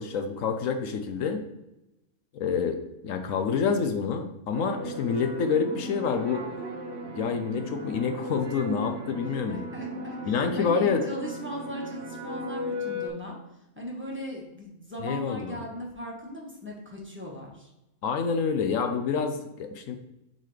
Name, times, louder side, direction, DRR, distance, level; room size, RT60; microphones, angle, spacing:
voice 1, 0.0-1.4 2.3-2.8 3.0-6.5 7.2-9.6 10.3-11.0 15.0-15.6 18.0-19.9, left 6 dB, 75° left, 7 dB, 1.0 m, -27 dB
sound 1, 4.5-13.1, equal, 55° right, 1.1 m, -36 dB
voice 2, 9.2-17.7, equal, 10° right, -3 dB, 1.4 m, -38 dB
10.5 x 4.0 x 3.2 m, 0.92 s
omnidirectional pair, 1.5 m